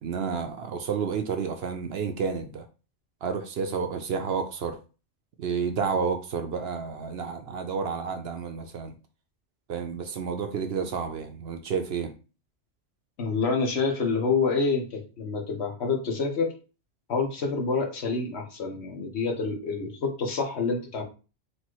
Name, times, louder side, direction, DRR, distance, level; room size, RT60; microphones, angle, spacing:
voice 1, 0.0-2.6 3.2-4.8 5.4-8.9 9.7-12.1, right 6 dB, 65° right, 0.8 m, -30 dB
voice 2, 13.2-16.5 17.1-21.0, left 4 dB, 65° left, 1.3 m, -27 dB
4.2 x 2.4 x 4.5 m
omnidirectional pair, 1.2 m